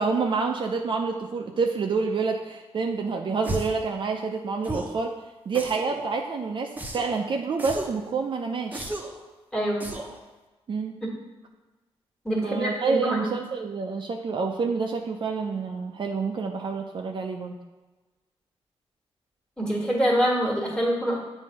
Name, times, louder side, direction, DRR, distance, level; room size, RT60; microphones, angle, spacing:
voice 1, 0.0-5.2 5.5-8.9 10.7-11.0 12.4-17.6, right 4 dB, 50° right, 3 dB, 0.5 m, -28 dB
sound 1, 3.4-3.8 4.6-5.0 5.5-6.0 6.8-7.2 7.6-8.0 8.7-9.2 9.8-10.2, right 1 dB, 15° right, 0.7 m, -34 dB
voice 2, 9.5-9.8 12.2-13.3 19.6-21.2, equal, 5° left, -2 dB, 1.5 m, -25 dB
7.5 x 2.7 x 5.3 m, 1.2 s
cardioid pair, 100°, 11 cm